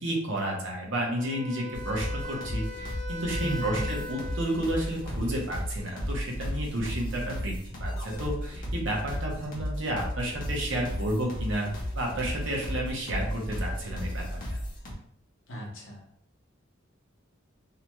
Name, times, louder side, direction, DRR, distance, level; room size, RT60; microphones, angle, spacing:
voice 1, 0.0-7.5 7.8-11.7 12.0-14.2 14.5-14.6, right 1 dB, 70° right, -1 dB, 0.7 m, -31 dB
Wind instrument woodwind instrument, 1.2-5.2, left 2 dB, 35° right, 0.4 m, -40 dB
sound 1, 1.7-14.9, equal, 40° left, 0.7 m, -34 dB
voice 2, 3.4-3.8 15.5-16.0, equal, 75° left, -2 dB, 0.8 m, -35 dB
2.7 x 2.2 x 2.9 m, 0.65 s
head